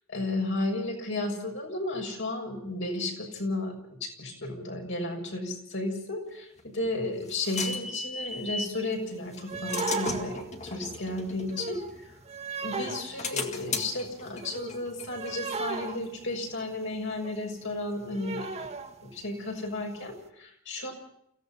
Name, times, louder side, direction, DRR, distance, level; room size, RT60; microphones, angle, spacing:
voice 1, 0.1-3.7 4.0-12.1 12.6-18.7 19.0-20.9, left 2 dB, 60° left, 2 dB, 6.5 m, -33 dB
sound 1, 6.6-8.8 9.3-12.4 12.9-16.3, left 4 dB, 35° left, 2.0 m, -37 dB
sound 2, 8.3-8.4 8.6-8.9 9.4-16.7 17.1-17.3 17.6-17.7 17.9-19.2 19.6-19.7 20.1-20.2, right 4 dB, 30° right, 1.5 m, -37 dB
29.5 x 16.5 x 5.7 m, 0.74 s
head